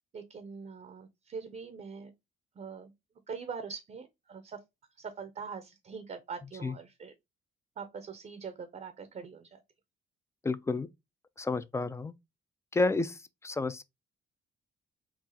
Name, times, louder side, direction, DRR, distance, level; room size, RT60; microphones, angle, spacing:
voice 1, 0.1-2.1 2.5-2.9 3.3-4.6 5.0-7.1 7.8-9.6, right 5 dB, 40° right, 0.6 m, -43 dB
voice 2, 10.4-10.9 11.4-12.1 12.7-13.8, left 3 dB, 15° left, 0.3 m, -30 dB
3.9 x 2.3 x 2.7 m
cardioid pair, 90°, 20 cm